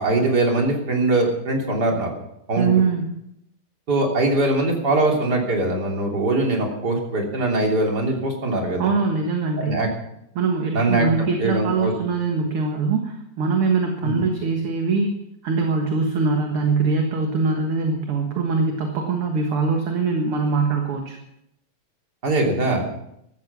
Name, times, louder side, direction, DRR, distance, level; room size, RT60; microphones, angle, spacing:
voice 1, 0.0-2.1 2.5-2.7 3.9-8.8 9.6-9.9 10.7-11.9 14.0-14.2 22.2-22.8, right 2 dB, 35° right, 0 dB, 3.5 m, -22 dB
voice 2, 2.6-3.1 8.8-9.9 10.4-15.1 15.4-21.2, right 4 dB, 50° right, 3 dB, 2.2 m, -22 dB
15.5 x 13.0 x 6.1 m, 0.79 s
omnidirectional pair, 3.4 m